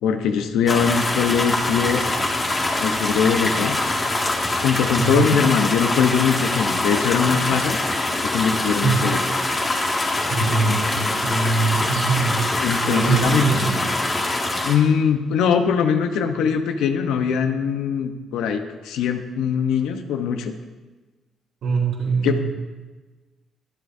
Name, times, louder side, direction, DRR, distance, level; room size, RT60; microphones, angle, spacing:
voice 1, 0.0-2.0 2.8-3.8 4.6-7.8 8.2-9.2 12.6-13.5 14.6-20.5 22.2-22.4, left 7 dB, 85° left, 7 dB, 0.9 m, -21 dB
sound 1, 0.7-14.8, left 2 dB, 25° left, 2.1 m, -24 dB
voice 2, 5.0-5.3 8.8-9.1 10.3-12.3 12.8-13.8 21.6-22.4, right 4 dB, 70° right, -3 dB, 3.9 m, -22 dB
23.0 x 8.3 x 2.7 m, 1.3 s
cardioid pair, 90°, 0 cm